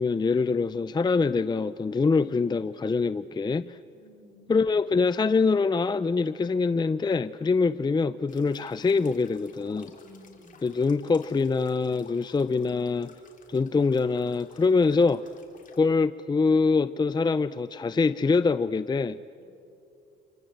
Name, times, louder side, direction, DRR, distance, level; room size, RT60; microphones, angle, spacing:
voice 1, 0.0-3.8 4.5-9.9 10.6-13.1 13.5-15.2 15.8-19.2, left 4 dB, 20° left, 14 dB, 0.5 m, -24 dB
voice 2, 3.9-4.5 10.0-10.7 19.4-19.5, left 1 dB, 60° left, 0 dB, 7.4 m, -54 dB
sound 1, 8.3-15.8, left 5 dB, 40° left, 3.6 m, -56 dB
28.0 x 24.5 x 7.8 m, 2.7 s
cardioid pair, 90°, 20 cm